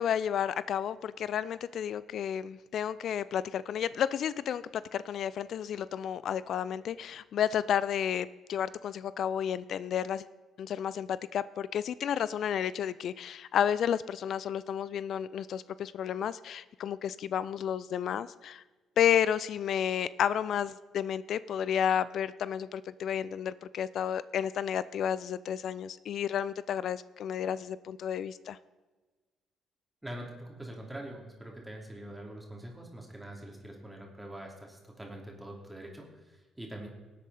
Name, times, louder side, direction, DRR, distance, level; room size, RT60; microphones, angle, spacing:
voice 1, 0.0-10.3 10.6-18.6 19.0-28.6, left 9 dB, 60° left, 17 dB, 0.3 m, -31 dB
voice 2, 30.0-36.9, right 1 dB, 10° right, -1 dB, 2.9 m, -44 dB
19.0 x 8.4 x 4.2 m, 1.3 s
hypercardioid pair, 50°, 0 cm